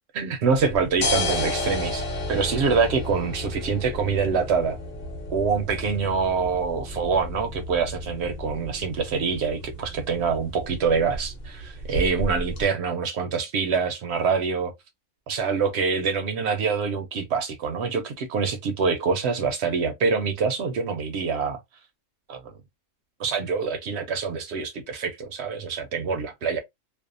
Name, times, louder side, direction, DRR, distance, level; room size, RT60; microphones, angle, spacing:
voice 1, 0.1-4.8 5.3-14.7 15.3-21.6 22.3-22.5 23.2-26.6, right 5 dB, 65° right, 0.7 m, -25 dB
sound 1, 0.5-12.6, left 1 dB, 45° left, 0.9 m, -32 dB
2.6 x 2.1 x 2.5 m
omnidirectional pair, 1.5 m